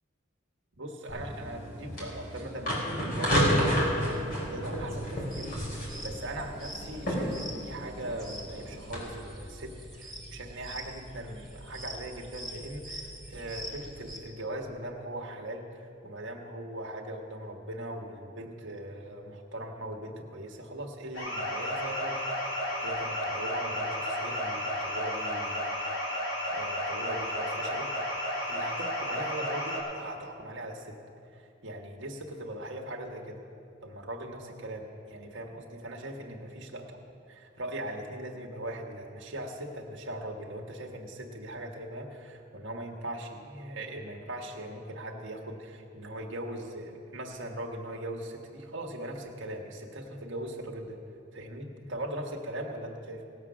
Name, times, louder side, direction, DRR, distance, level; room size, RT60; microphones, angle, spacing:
voice 1, 0.8-22.2 22.5-25.9 26.5-30.9 31.6-33.4 33.8-36.8 37.3-51.0 51.3-53.2, right 1 dB, 80° right, 0 dB, 1.4 m, -40 dB
sound 1, 1.1-9.0, equal, 50° left, 4.0 m, -31 dB
sound 2, 4.8-14.2, equal, ahead, 2.1 m, -44 dB
sound 3, 21.1-29.8, left 1 dB, 85° left, 3.5 m, -32 dB
18.0 x 7.5 x 6.1 m, 2.5 s
head